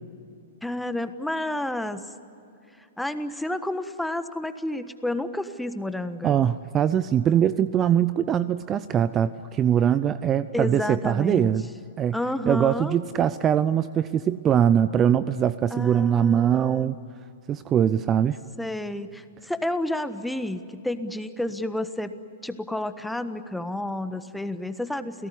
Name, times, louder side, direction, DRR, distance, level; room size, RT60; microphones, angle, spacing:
voice 1, 0.6-2.1 3.0-6.4 10.5-11.5 12.1-13.0 15.7-16.9 18.6-22.1 22.4-25.3, left 1 dB, 5° left, 10 dB, 1.3 m, -30 dB
voice 2, 6.2-11.7 12.0-12.1 12.5-17.0 17.5-18.4, right 9 dB, 25° right, 16 dB, 0.6 m, -22 dB
29.0 x 17.5 x 10.0 m, 2.7 s
hypercardioid pair, 115°, 0 cm